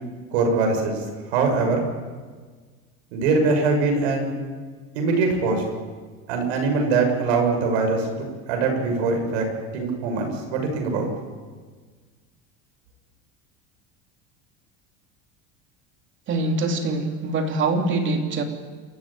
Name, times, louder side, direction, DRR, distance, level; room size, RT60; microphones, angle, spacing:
voice 1, 0.3-1.0 1.3-1.8 3.1-4.3 4.9-5.6 6.3-9.4 9.7-11.1, right 4 dB, 85° right, 3 dB, 6.7 m, -22 dB
voice 2, 16.3-18.4, right 3 dB, 40° right, 4 dB, 3.3 m, -24 dB
28.0 x 13.0 x 8.9 m, 1.5 s
supercardioid pair, 130°, 31 cm